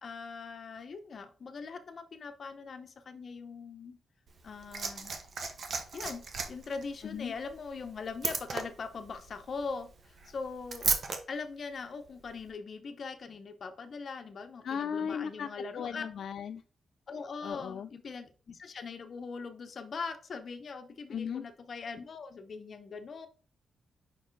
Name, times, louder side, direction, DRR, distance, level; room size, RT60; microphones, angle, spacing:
voice 1, 0.0-4.0 4.4-5.1 5.9-6.2 6.5-10.9 11.3-16.0 17.1-23.3, left 4 dB, 45° left, 8 dB, 0.8 m, -41 dB
Liquid, 4.3-11.2 12.3-12.4, right 4 dB, 55° right, 1.0 m, -36 dB
voice 2, 7.0-7.3 14.6-16.6 17.4-17.9 21.1-21.4, left 7 dB, 65° left, 9 dB, 0.3 m, -36 dB
5.4 x 4.5 x 4.5 m, 0.40 s
wide cardioid pair, 135°, 0 cm